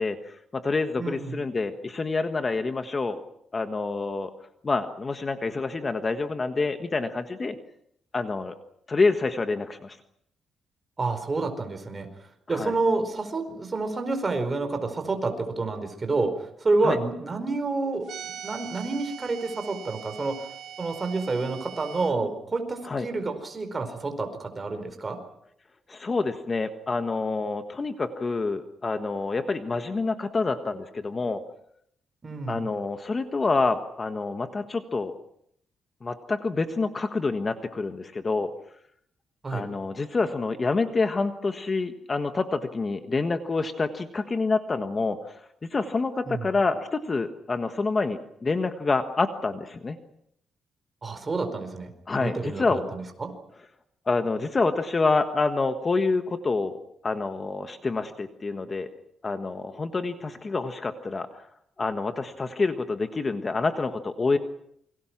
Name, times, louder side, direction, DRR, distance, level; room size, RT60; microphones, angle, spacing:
voice 1, 0.0-3.2 3.5-4.3 4.6-7.6 8.1-8.6 8.9-10.0 12.5-12.7 16.8-17.0 22.8-23.1 25.9-31.4 32.5-35.1 36.0-38.5 39.5-50.0 52.1-52.8 54.1-56.8 57.0-58.9 59.2-61.4 61.8-64.4, left 3 dB, 30° left, 8 dB, 1.5 m, -27 dB
voice 2, 1.0-1.4 11.0-12.1 12.5-20.3 20.8-25.2 32.2-32.7 39.4-39.7 46.3-46.5 51.0-51.9 52.2-53.4, right 3 dB, 25° right, 7 dB, 4.8 m, -29 dB
sound 1, 18.0-22.1, right 9 dB, 70° right, 3.4 m, -41 dB
28.5 x 24.5 x 6.0 m, 0.72 s
cardioid pair, 125°, 0 cm